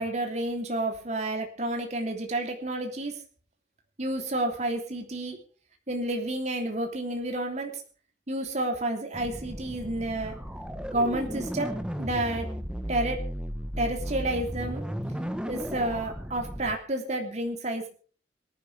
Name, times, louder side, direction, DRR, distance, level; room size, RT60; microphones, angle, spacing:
voice 1, 0.0-3.1 4.0-5.4 5.9-7.8 8.3-10.3 10.9-12.5 12.9-13.2 13.8-14.8 15.5-17.9, right 1 dB, 40° right, 3 dB, 3.1 m, -30 dB
sound 1, 9.1-16.8, equal, 5° right, 1.1 m, -35 dB
25.5 x 10.5 x 3.4 m, 0.41 s
head